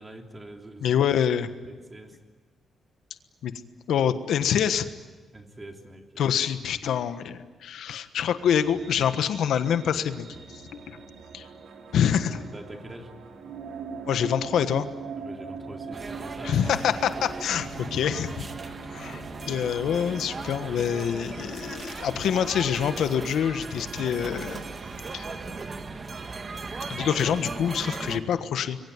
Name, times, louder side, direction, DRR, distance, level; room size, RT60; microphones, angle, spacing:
voice 1, 0.0-1.1 1.7-2.2 5.3-6.3 11.0-11.1 12.0-13.1 15.2-16.7, right 1 dB, 20° right, 3 dB, 3.2 m, -44 dB
voice 2, 0.8-1.5 3.4-3.5 3.9-4.9 6.2-10.3 10.5-10.6 10.9-11.0 11.3-11.5 11.9-12.4 14.1-14.9 16.4-16.9 17.2-18.5 18.9-24.6 25.1-25.3 26.9-28.8, left 8 dB, 80° left, 10 dB, 1.3 m, -26 dB
sound 1, 8.4-25.7, right 4 dB, 75° right, 4.1 m, -42 dB
sound 2, 15.9-28.2, right 4 dB, 35° right, 1.6 m, -38 dB
26.0 x 22.5 x 9.6 m, 1.3 s
cardioid pair, 130°, 0 cm